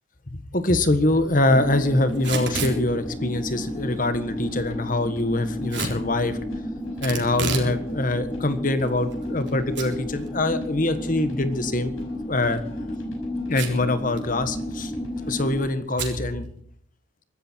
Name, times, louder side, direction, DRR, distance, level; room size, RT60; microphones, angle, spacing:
voice 1, 0.3-6.4 7.0-11.9 12.3-12.6 13.5-14.9 15.3-16.5, left 2 dB, 40° left, 10 dB, 1.5 m, -24 dB
sound 1, 1.1-15.6, equal, 90° left, 5.6 m, -43 dB
sound 2, 1.5-15.7, left 1 dB, 15° left, 1.8 m, -32 dB
Packing tape duct tape / Tearing, 2.1-2.8 5.7-6.0 7.0-7.7 8.1-8.2 8.9-9.5 9.8-9.9 10.3-10.4 12.3-12.6 13.5-13.9 14.2-14.3 14.5-14.9 16.0-16.2, right 5 dB, 60° right, 3.9 m, -30 dB
23.0 x 13.5 x 4.6 m, 0.64 s
head